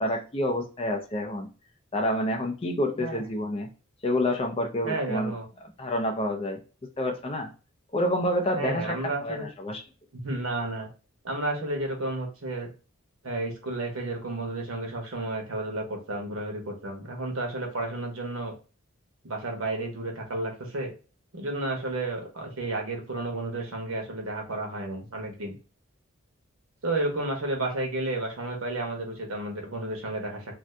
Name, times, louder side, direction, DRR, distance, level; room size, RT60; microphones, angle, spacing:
voice 1, 0.0-1.5 1.9-3.7 4.0-5.3 5.8-6.6 7.0-7.5 7.9-9.8, left 1 dB, 25° left, 3 dB, 0.4 m, -28 dB
voice 2, 4.8-5.4 8.5-9.4 10.1-10.9 11.2-12.7 13.2-18.5 19.2-20.9 21.3-25.6 26.8-30.4, right 2 dB, 80° right, 2 dB, 0.9 m, -32 dB
2.6 x 2.4 x 3.2 m, 0.35 s
head